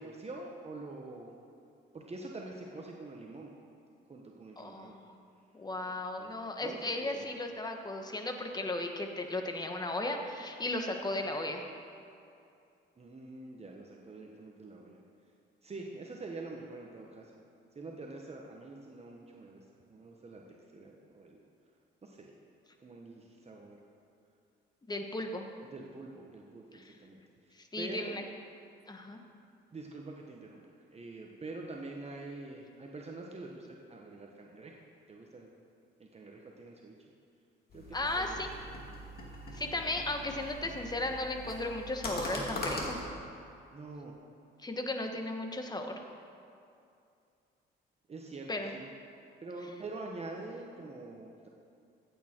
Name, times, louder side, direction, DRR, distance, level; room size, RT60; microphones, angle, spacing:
voice 1, 0.0-1.3 1.9-3.5 4.1-4.9 6.2-7.3 13.0-15.0 15.6-17.4 17.7-19.6 19.9-20.4 20.7-21.4 22.0-22.3 22.8-23.8 25.7-28.2 29.7-34.8 35.1-35.5 36.0-36.9 37.7-38.4 43.7-44.1 48.1-48.9 49.4-51.5, right 2 dB, 30° right, 0 dB, 1.2 m, -45 dB
voice 2, 4.6-5.1 5.5-11.6 24.8-25.5 26.7-26.9 27.5-28.2 28.9-29.2 37.9-38.5 39.5-43.0 44.6-45.9 48.5-48.7, left 2 dB, 20° left, 4 dB, 1.3 m, -36 dB
sound 1, 37.7-43.0, left 1 dB, 50° left, 2.5 m, -41 dB
15.0 x 8.8 x 4.5 m, 2.5 s
cardioid pair, 90°, 20 cm